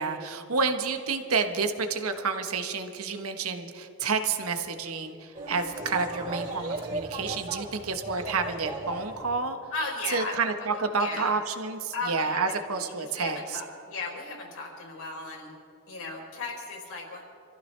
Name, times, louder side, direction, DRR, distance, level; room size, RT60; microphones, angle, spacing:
voice 1, 0.0-9.6 10.1-13.6, right 4 dB, 80° right, 6 dB, 1.2 m, -29 dB
sound 1, 5.3-9.5, right 2 dB, 40° right, 3.6 m, -37 dB
voice 2, 9.7-10.4 10.7-11.3 11.9-15.5 15.9-17.2, left 3 dB, 75° left, 0 dB, 3.9 m, -36 dB
27.0 x 15.0 x 3.3 m, 2.7 s
head